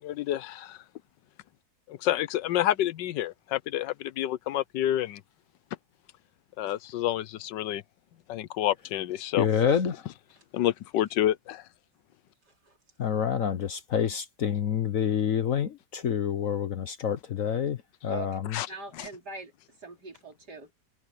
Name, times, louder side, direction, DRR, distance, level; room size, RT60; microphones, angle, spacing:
voice 1, 0.0-0.8 1.9-5.2 6.6-7.8 8.3-9.5 10.5-11.7 18.5-18.7 18.9-19.1, left 12 dB, 80° left, 1.3 m, -29 dB
voice 2, 9.4-10.0 13.0-17.8 18.0-18.6, left 8 dB, 55° left, 1.2 m, -27 dB
voice 3, 18.7-19.5 19.8-20.7, right 4 dB, 65° right, 4.4 m, -42 dB
omnidirectional pair, 1.9 m